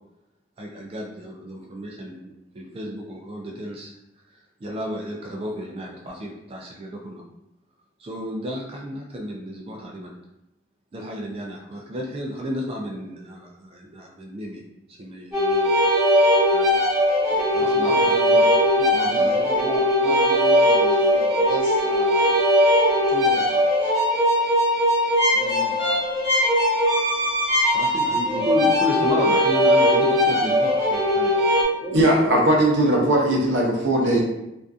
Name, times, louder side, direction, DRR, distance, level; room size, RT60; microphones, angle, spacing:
voice 1, 0.6-3.9 4.3-7.2 8.0-10.1 10.9-14.6 14.9-15.8 16.5-16.8 17.3-18.5 18.9-19.4 27.7-31.4, left 1 dB, 30° right, -1 dB, 0.3 m, -32 dB
sound 1, 15.3-31.6, equal, 5° right, 1.1 m, -19 dB
voice 2, 17.6-22.5 22.9-23.9 25.3-26.0 31.8-32.4 34.0-34.2, right 1 dB, 45° left, -3 dB, 0.7 m, -35 dB
voice 3, 31.9-34.2, right 1 dB, 70° right, -2 dB, 0.7 m, -19 dB
2.5 x 2.3 x 2.3 m, 0.87 s
head